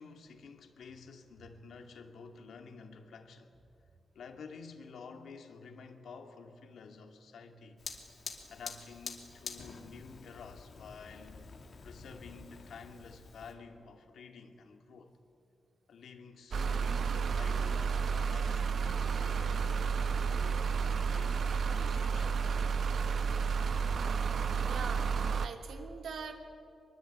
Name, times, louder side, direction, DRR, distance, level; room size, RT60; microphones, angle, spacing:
voice 1, 0.0-3.5 4.1-7.8 8.5-11.5 11.8-15.1 15.9-20.7 21.1-22.4, left 5 dB, 75° left, 4 dB, 2.3 m, -51 dB
Fire, 7.8-13.5, left 5 dB, 45° left, 2.7 m, -47 dB
sound 1, 16.5-25.5, right 6 dB, 55° right, 0.9 m, -31 dB
voice 2, 24.7-26.3, right 5 dB, 75° right, 4 dB, 2.7 m, -42 dB
24.5 x 22.5 x 8.9 m, 2.5 s
wide cardioid pair, 170°, 0 cm